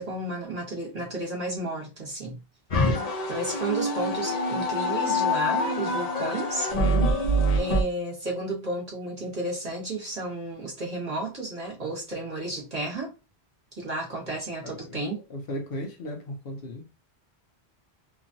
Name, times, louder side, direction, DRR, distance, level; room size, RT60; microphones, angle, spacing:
voice 1, 0.0-2.4 3.3-6.7 7.5-13.1 13.8-15.2, right 2 dB, 40° right, 1.2 m, -32 dB
sound 1, 2.7-7.8, equal, 40° left, 0.7 m, -25 dB
voice 2, 14.6-15.0 15.3-16.8, left 1 dB, 65° left, 0.9 m, -36 dB
2.9 x 2.5 x 2.6 m
omnidirectional pair, 1.1 m